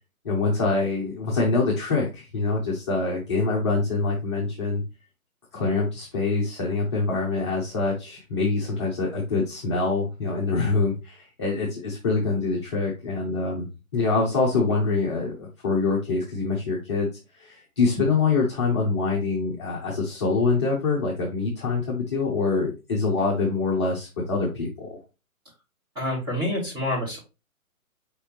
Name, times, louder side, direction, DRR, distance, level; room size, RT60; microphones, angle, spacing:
voice 1, 0.2-4.8 5.5-13.7 13.9-25.0, left 3 dB, 20° left, -4 dB, 0.6 m, -25 dB
voice 2, 25.9-27.2, left 1 dB, 10° right, -5 dB, 1.6 m, -27 dB
4.8 x 3.4 x 2.9 m, 0.27 s
hypercardioid pair, 150°, 43 cm